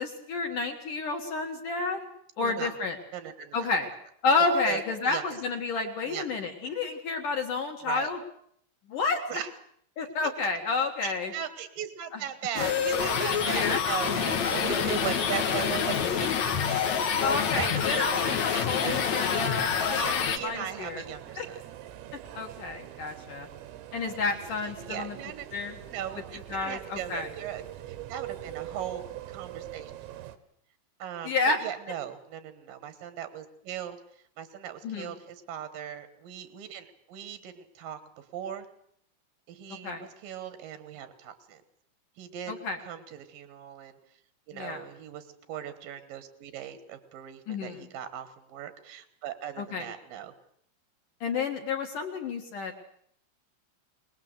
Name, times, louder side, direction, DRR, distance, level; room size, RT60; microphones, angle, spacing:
voice 1, 0.0-2.1 2.4-3.0 3.5-3.9 4.2-8.2 8.9-9.2 10.0-11.3 13.5-13.8 17.2-21.0 21.4-21.5 22.3-23.5 23.9-25.2 25.5-25.8 26.5-27.3 31.2-31.6 34.8-35.1 39.8-40.0 42.5-42.8 44.5-44.8 47.5-47.8 49.6-49.9 51.2-52.8, left 4 dB, 55° left, 2 dB, 2.5 m, -30 dB
voice 2, 2.4-2.7 3.1-3.7 4.7-5.4 6.0-6.4 7.8-8.1 9.3-9.5 11.0-16.8 17.6-19.2 19.9-21.6 24.6-25.5 25.9-30.1 31.0-34.0 34.4-38.7 39.5-41.6 42.2-44.0 44.5-50.3, right 9 dB, 70° right, 11 dB, 2.2 m, -38 dB
sound 1, 12.5-20.4, left 7 dB, 80° left, 1.6 m, -27 dB
sound 2, 13.1-30.4, right 13 dB, 85° right, 4.0 m, -44 dB
24.0 x 20.5 x 8.1 m, 0.67 s
omnidirectional pair, 6.0 m